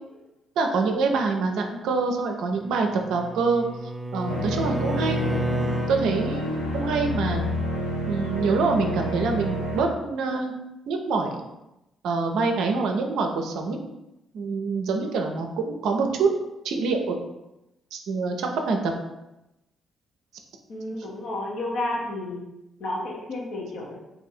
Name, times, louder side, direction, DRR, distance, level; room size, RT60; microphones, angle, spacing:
voice 1, 0.6-3.6 4.1-5.2 5.9-7.4 8.1-10.5 10.9-11.4 12.0-13.8 14.3-16.3 16.6-17.2 17.9-18.9, right 4 dB, 70° right, 3 dB, 0.5 m, -25 dB
Bowed string instrument, 2.6-6.0, right 1 dB, 10° right, 0.3 m, -30 dB
sound 1, 4.3-9.8, left 1 dB, 90° left, 0.5 m, -29 dB
voice 2, 20.7-22.5 22.8-24.0, left 1 dB, 65° left, -2 dB, 0.9 m, -31 dB
2.7 x 2.6 x 4.1 m, 0.93 s
hypercardioid pair, 45°, 0 cm